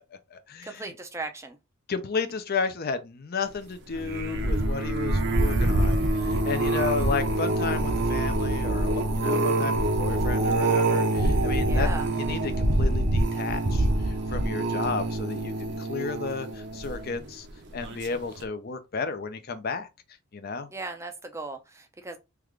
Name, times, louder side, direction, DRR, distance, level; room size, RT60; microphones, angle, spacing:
voice 1, 0.1-0.9 1.9-11.9 12.2-17.5 17.7-19.9 20.3-20.7, left 4 dB, 45° left, 0.5 m, -33 dB
voice 2, 0.6-1.6 11.7-12.1 20.7-22.2, right 3 dB, 15° right, 0.4 m, -37 dB
sound 1, 3.9-17.3 17.8-18.1 18.4-18.5, right 1 dB, 55° right, 0.6 m, -25 dB
3.5 x 2.4 x 3.1 m
head